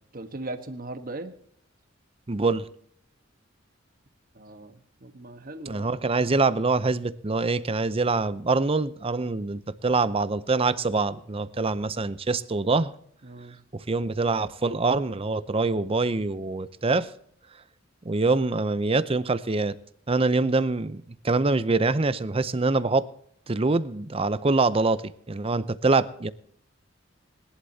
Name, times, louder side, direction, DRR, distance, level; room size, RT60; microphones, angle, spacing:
voice 1, 0.1-1.3 4.3-6.0 13.2-13.6, right 2 dB, 45° right, 1.3 m, -39 dB
voice 2, 2.3-2.7 5.7-12.9 13.7-17.1 18.0-19.7 20.1-23.1 23.5-26.3, right 3 dB, 30° right, 0.6 m, -25 dB
21.0 x 11.5 x 2.8 m
head